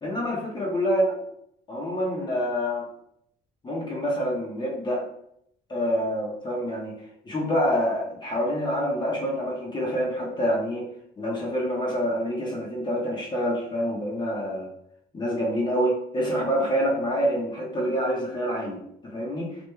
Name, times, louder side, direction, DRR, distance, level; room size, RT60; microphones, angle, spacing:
voice 1, 0.0-1.2 1.7-2.9 3.6-5.0 5.7-7.0 7.2-10.9 11.2-14.7 15.1-19.6, equal, 25° left, -3 dB, 0.7 m, -27 dB
3.0 x 2.5 x 2.3 m, 0.72 s
cardioid pair, 110°, 17 cm